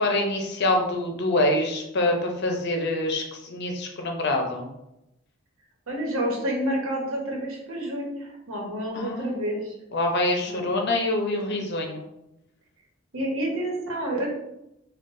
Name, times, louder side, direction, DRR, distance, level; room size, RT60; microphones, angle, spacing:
voice 1, 0.0-4.7 8.9-9.3 9.9-12.0, left 1 dB, 55° left, 2 dB, 0.7 m, -25 dB
voice 2, 5.9-9.7 10.5-10.7 13.1-14.3, right 1 dB, 80° right, -1 dB, 1.1 m, -29 dB
3.9 x 2.4 x 3.7 m, 0.87 s
head